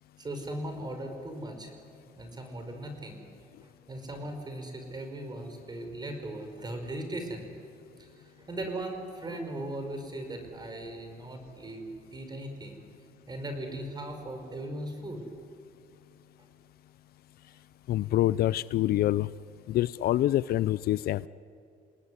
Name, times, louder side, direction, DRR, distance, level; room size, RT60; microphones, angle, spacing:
voice 1, 0.2-1.7 2.2-3.2 3.9-7.5 8.0-12.8 13.3-15.2 16.4-16.5, right 1 dB, 25° right, 6 dB, 5.4 m, -38 dB
voice 2, 17.9-19.3 19.7-21.3, left 14 dB, 65° left, 19 dB, 0.5 m, -26 dB
29.5 x 19.0 x 9.9 m, 2.6 s
cardioid pair, 110°, 17 cm